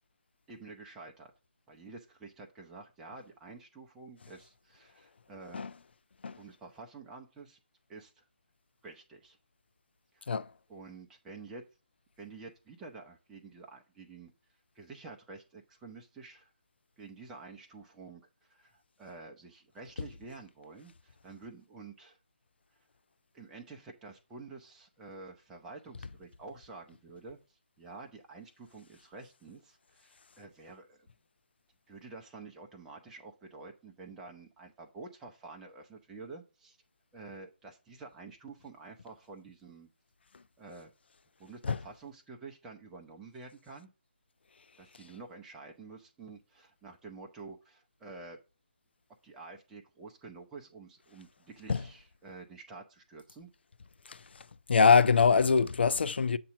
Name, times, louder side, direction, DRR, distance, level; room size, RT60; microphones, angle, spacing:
voice 1, 0.5-1.3 1.7-5.6 6.4-7.6 7.9-8.3 8.8-9.4 10.1-10.4 10.7-11.6 12.2-14.3 14.7-16.5 17.0-22.2 23.3-31.1 31.9-36.8 37.1-39.9 40.6-40.9 41.4-43.9 44.8-48.4 49.2-53.5, right 3 dB, 10° right, 0.6 m, -49 dB
voice 2, 54.1-54.4 54.7-56.4, left 5 dB, 60° left, 0.4 m, -24 dB
7.5 x 2.7 x 5.8 m
figure-of-eight pair, 150°, 6 cm